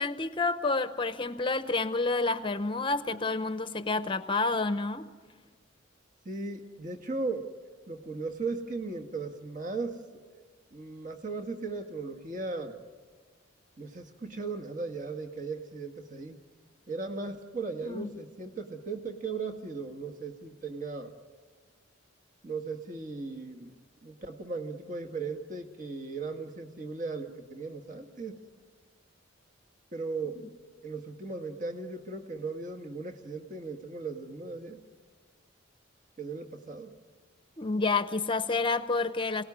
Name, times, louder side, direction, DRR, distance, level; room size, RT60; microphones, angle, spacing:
voice 1, 0.0-5.1 17.8-18.1 30.3-30.5 37.6-39.4, left 3 dB, 25° left, 0.8 m, -29 dB
voice 2, 6.2-7.5 7.9-10.0 10.3-10.4 10.7-12.8 13.8-16.4 16.9-21.1 22.4-23.7 24.0-28.4 29.9-30.4 30.8-34.8 36.2-36.9, right 3 dB, 40° right, 1.6 m, -37 dB
28.5 x 18.5 x 9.9 m
head